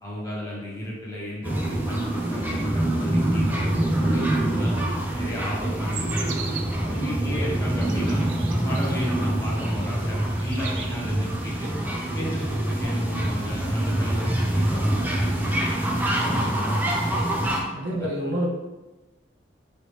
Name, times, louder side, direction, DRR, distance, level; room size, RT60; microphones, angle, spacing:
voice 1, 0.0-4.7 5.1-6.6 6.9-8.2 8.6-11.7 12.1-15.7 16.2-17.1 17.8-18.1, equal, 20° left, -6 dB, 1.0 m, -34 dB
sound 1, 1.4-17.6, right 1 dB, 10° right, 0.5 m, -25 dB
sound 2, 5.9-6.9 7.5-9.1 9.7-10.1 10.4-11.1, right 7 dB, 80° right, 0.4 m, -38 dB
voice 2, 17.7-18.5, equal, 65° right, -3 dB, 0.9 m, -27 dB
4.1 x 3.2 x 3.1 m, 1.1 s
head